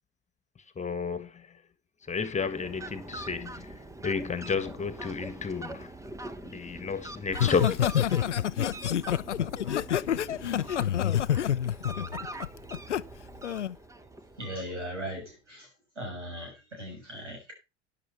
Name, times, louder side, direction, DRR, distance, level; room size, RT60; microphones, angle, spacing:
voice 1, 0.7-1.5 2.1-5.9 6.4-7.9, left 5 dB, 20° left, 1.6 m, -32 dB
Fowl, 2.1-15.1, right 2 dB, 10° right, 1.1 m, -44 dB
Laughter, 7.3-13.0 13.4-13.7, left 10 dB, 80° left, 0.6 m, -27 dB
voice 2, 14.4-15.7 15.9-17.5, equal, 85° right, 6.7 m, -39 dB
11.5 x 10.5 x 4.4 m
figure-of-eight pair, 70°, 35 cm